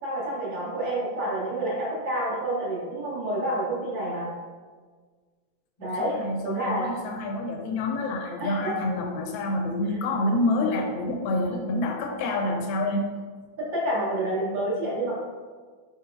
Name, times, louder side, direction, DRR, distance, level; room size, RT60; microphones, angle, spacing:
voice 1, 0.0-4.3 5.8-6.2 6.4-6.9 8.4-8.7 13.6-15.2, right 1 dB, 65° right, -7 dB, 2.0 m, -28 dB
voice 2, 6.0-13.1, left 2 dB, 85° left, 3 dB, 1.4 m, -27 dB
4.5 x 4.5 x 2.3 m, 1.5 s
omnidirectional pair, 2.1 m